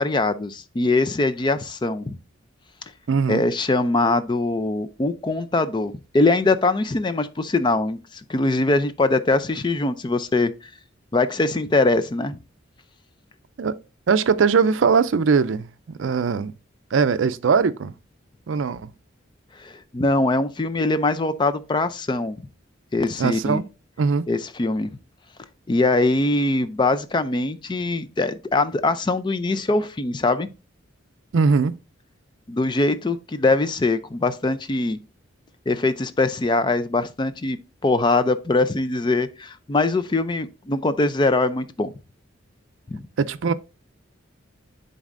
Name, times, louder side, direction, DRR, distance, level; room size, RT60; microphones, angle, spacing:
voice 1, 0.0-2.2 3.3-10.5 11.1-12.4 19.6-22.4 22.9-23.6 24.3-24.9 25.7-30.5 32.5-35.0 35.7-37.6 37.8-41.9 42.9-43.1, left 2 dB, 25° left, 0.4 m, -22 dB
voice 2, 3.1-3.4 13.6-13.7 14.1-16.5 16.9-17.9 18.5-18.9 23.2-23.6 24.0-24.2 31.3-31.8 43.2-43.5, right 5 dB, 75° right, 0.4 m, -20 dB
10.5 x 4.1 x 2.5 m
head